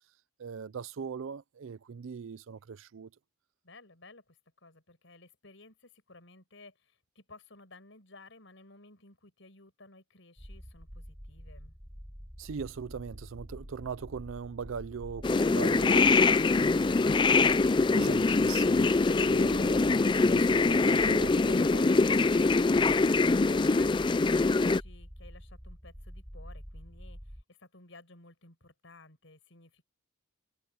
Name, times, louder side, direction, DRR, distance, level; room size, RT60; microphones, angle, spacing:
voice 1, 0.4-3.1 12.4-16.2 16.4-17.1 17.9-21.9, right 6 dB, 75° right, 0.4 m, -40 dB
voice 2, 3.6-11.7 22.3-29.9, left 2 dB, 70° left, 5.8 m, -55 dB
sound 1, 10.4-27.4, equal, 5° right, 7.5 m, -47 dB
sound 2, 15.2-24.8, left 3 dB, 25° left, 0.3 m, -24 dB
head